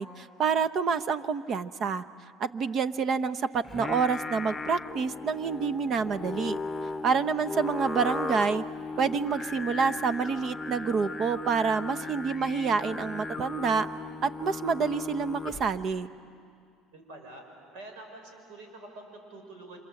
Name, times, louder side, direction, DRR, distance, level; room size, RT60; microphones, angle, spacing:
voice 1, 0.0-2.0 2.4-6.6 7.0-8.6 9.0-13.9 14.2-16.1, right 5 dB, 50° right, 13 dB, 0.9 m, -28 dB
Singing, 3.6-15.8, left 3 dB, 15° left, 1.0 m, -36 dB
voice 2, 16.9-17.4 17.7-19.8, right 2 dB, 80° right, 3 dB, 6.1 m, -46 dB
27.5 x 26.5 x 7.8 m, 2.3 s
supercardioid pair, 100°, 0 cm